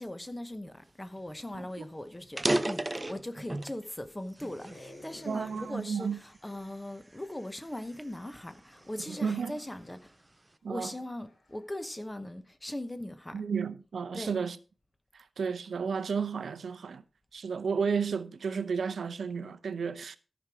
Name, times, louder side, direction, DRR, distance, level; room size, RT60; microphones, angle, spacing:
voice 1, 0.0-10.1 10.7-13.4 14.1-14.4, left 1 dB, 10° left, 0.9 m, -40 dB
sound 1, 1.2-1.3 1.6-1.7 2.2-3.8 4.4-5.6 6.2-6.5 7.1-9.2, right 1 dB, 20° right, 0.4 m, -33 dB
sound 2, 4.5-6.9 7.5-7.6 8.2-12.0, left 1 dB, 35° left, 3.3 m, -54 dB
voice 2, 5.2-6.2 9.1-9.6 10.6-10.9 13.3-14.6 15.1-17.0 17.3-20.2, right 6 dB, 75° right, 0.6 m, -32 dB
13.0 x 6.1 x 4.8 m
wide cardioid pair, 165°, 0 cm